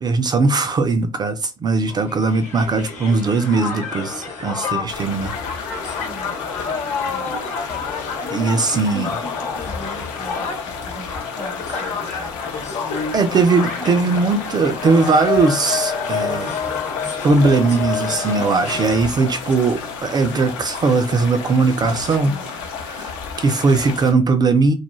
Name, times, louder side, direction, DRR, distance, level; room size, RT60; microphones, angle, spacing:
voice 1, 0.0-5.3 8.3-9.1 13.1-16.6 17.2-22.3 22.9-24.7, right 4 dB, 25° right, 0.4 m, -19 dB
Crowd, 1.9-19.3, left 5 dB, 50° left, 1.1 m, -29 dB
sound 1, 4.9-24.1, left 5 dB, 65° left, 0.6 m, -33 dB
voice 2, 6.0-6.7 7.0-7.5 8.2-14.3 18.4-18.8 22.2-22.7, left 1 dB, 25° left, 0.9 m, -37 dB
sound 2, 18.3-23.5, left 2 dB, 85° left, 0.9 m, -42 dB
2.2 x 2.1 x 3.0 m
figure-of-eight pair, 55°, 15 cm